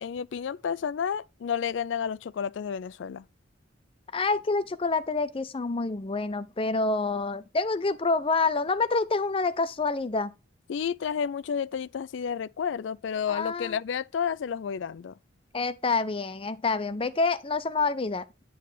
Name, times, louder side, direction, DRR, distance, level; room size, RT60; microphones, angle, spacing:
voice 1, 0.0-3.3 10.7-15.2, left 7 dB, 70° left, 0.4 m, -31 dB
voice 2, 4.1-10.3 13.3-13.8 15.5-18.4, left 3 dB, 30° left, 0.6 m, -27 dB
9.3 x 3.2 x 6.6 m
head